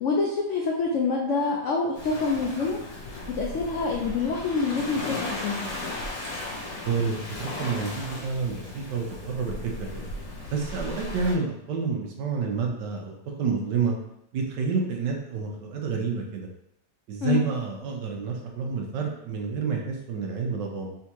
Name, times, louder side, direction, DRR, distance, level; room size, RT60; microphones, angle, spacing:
voice 1, 0.0-2.8 3.3-5.7 17.2-17.4, left 4 dB, 80° left, -1 dB, 0.6 m, -26 dB
Waves surf, 1.9-11.3, left 2 dB, 60° left, 1.4 m, -36 dB
voice 2, 6.8-9.9 10.5-14.0 14.3-16.5 17.1-20.9, right 5 dB, 80° right, 1 dB, 1.4 m, -29 dB
3.6 x 3.5 x 2.9 m, 0.80 s
omnidirectional pair, 1.9 m